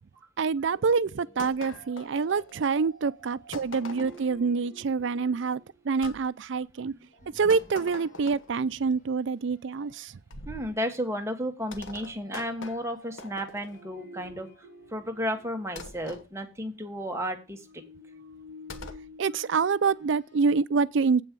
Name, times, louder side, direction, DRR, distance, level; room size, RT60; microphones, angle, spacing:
voice 1, 0.4-6.9 7.3-10.2 19.2-21.2, right 5 dB, 70° right, 0.4 m, -26 dB
sound 1, 0.7-6.0 7.1-8.4 8.8-9.0 9.6-10.1 11.7-16.1 17.4-20.5, right 1 dB, 45° left, 3.1 m, -51 dB
sound 2, 1.4-2.8 3.5-4.4 6.0-6.2 7.5-8.6 10.3-10.7 11.7-13.8 15.8-16.3 18.7-19.1, left 3 dB, 85° left, 1.1 m, -43 dB
voice 2, 6.9-7.4 10.4-14.5 14.9-17.8, equal, 15° right, 1.4 m, -33 dB
8.4 x 5.3 x 7.5 m
head